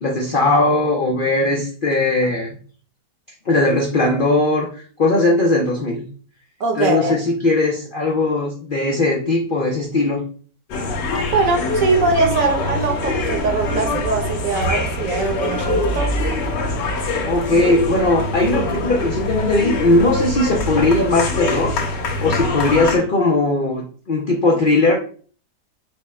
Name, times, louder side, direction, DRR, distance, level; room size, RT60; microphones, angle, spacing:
voice 1, 0.0-2.6 3.5-6.0 6.8-10.2 17.2-21.8 22.2-25.0, left 2 dB, 70° left, -1 dB, 0.5 m, -19 dB
voice 2, 6.6-7.2 11.3-16.2, right 3 dB, 60° right, 3 dB, 1.1 m, -21 dB
sound 1, 10.7-23.0, left 2 dB, 90° left, 1.5 m, -23 dB
4.6 x 2.2 x 4.1 m, 0.42 s
omnidirectional pair, 1.8 m